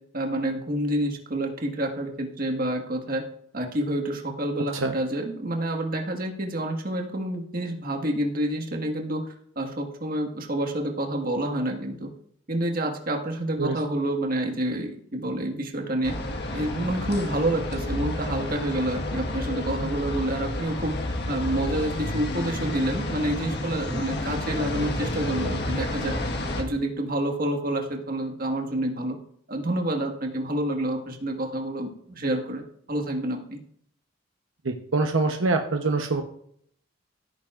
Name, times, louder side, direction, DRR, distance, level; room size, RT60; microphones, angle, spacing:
voice 1, 0.1-3.2 3.5-9.2 9.5-12.1 12.5-16.1 16.5-20.9 21.3-26.1 26.6-29.2 29.5-32.6 32.9-33.6, right 1 dB, 45° right, 2 dB, 1.6 m, -28 dB
sound 1, 16.0-26.6, left 1 dB, 55° left, 1.5 m, -30 dB
voice 2, 34.6-36.2, right 3 dB, 75° right, 4 dB, 0.9 m, -25 dB
15.5 x 9.0 x 2.5 m, 0.65 s
head